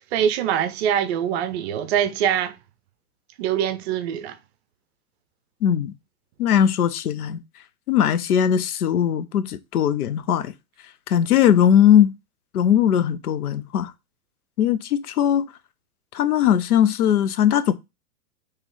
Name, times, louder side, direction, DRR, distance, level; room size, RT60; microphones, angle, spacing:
voice 1, 0.0-2.6 3.4-4.4, right 9 dB, 45° right, 0.6 m, -23 dB
voice 2, 5.6-5.9 6.4-7.4 7.9-10.5 11.1-12.1 12.5-13.9 14.6-15.5 16.1-17.7, left 9 dB, 85° left, 0.6 m, -19 dB
3.0 x 3.0 x 3.7 m
hypercardioid pair, 115°, 43 cm